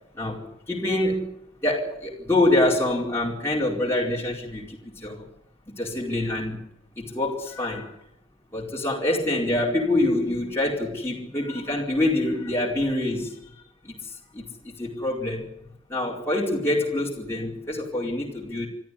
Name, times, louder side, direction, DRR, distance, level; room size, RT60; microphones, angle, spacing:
voice 1, 0.1-1.4 1.6-5.3 5.7-6.6 7.0-8.0 8.5-13.5 13.8-15.5 15.9-18.7, left 1 dB, 10° left, -3 dB, 4.6 m, -26 dB
25.5 x 13.5 x 9.9 m, 0.78 s
head